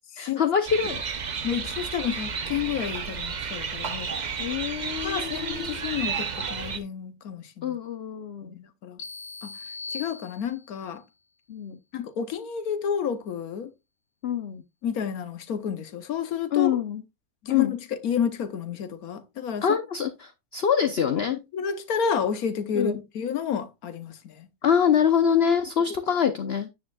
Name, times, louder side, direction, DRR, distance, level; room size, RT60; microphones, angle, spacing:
voice 1, 0.2-1.0 4.4-5.7 7.6-8.6 11.5-11.8 14.2-14.6 16.5-17.0 17.5-17.7 19.6-21.4 22.7-23.0 24.6-26.7, left 8 dB, 50° left, 0.8 m, -25 dB
sound 1, 0.7-6.8, right 5 dB, 40° right, 0.7 m, -32 dB
voice 2, 1.4-4.1 5.0-7.8 8.4-9.0 9.4-9.6 9.9-11.0 11.9-13.7 14.8-16.7 17.4-19.8 21.5-24.5, left 7 dB, 70° left, 1.3 m, -30 dB
sound 2, 9.0-10.9, left 4 dB, 35° left, 1.7 m, -39 dB
9.5 x 9.1 x 2.3 m
omnidirectional pair, 1.6 m